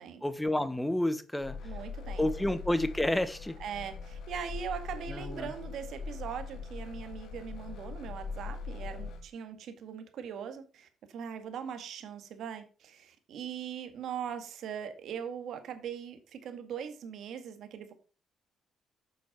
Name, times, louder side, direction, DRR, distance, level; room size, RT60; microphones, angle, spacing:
voice 1, 0.2-1.6 2.2-3.6 5.1-5.5, left 1 dB, 10° left, 1.1 m, -30 dB
sound 1, 1.4-9.2, left 4 dB, 70° left, 1.8 m, -41 dB
voice 2, 1.6-2.3 3.6-17.9, right 8 dB, 75° right, 1.9 m, -40 dB
9.1 x 6.1 x 5.2 m
cardioid pair, 90°, 0 cm